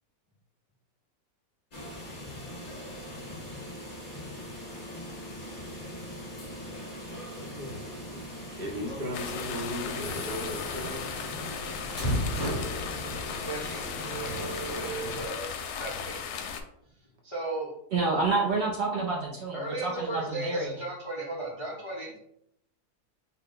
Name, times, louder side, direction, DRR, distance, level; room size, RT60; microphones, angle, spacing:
sound 1, 1.7-15.3, equal, 30° left, 1.4 m, -37 dB
voice 1, 8.6-11.1, equal, 45° right, 0 dB, 0.8 m, -36 dB
sound 2, 9.1-16.6, left 7 dB, 75° left, 1.1 m, -37 dB
voice 2, 13.4-13.9 14.5-15.5 15.8-16.2 17.2-17.7 19.5-22.3, right 2 dB, 50° left, -5 dB, 0.3 m, -36 dB
voice 3, 17.9-20.8, right 3 dB, 70° right, -3 dB, 0.5 m, -28 dB
4.4 x 2.1 x 3.7 m, 0.75 s
omnidirectional pair, 1.8 m